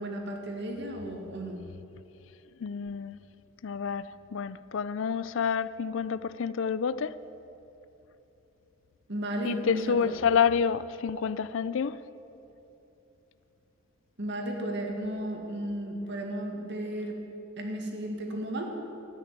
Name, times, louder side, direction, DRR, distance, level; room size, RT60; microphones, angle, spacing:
voice 1, 0.0-1.7 9.1-10.1 14.2-17.2 17.6-18.7, right 1 dB, 60° right, 2.0 m, -34 dB
voice 2, 2.6-3.2 3.6-7.2 9.4-12.0, left 6 dB, 65° left, 0.4 m, -28 dB
13.0 x 9.7 x 9.2 m
head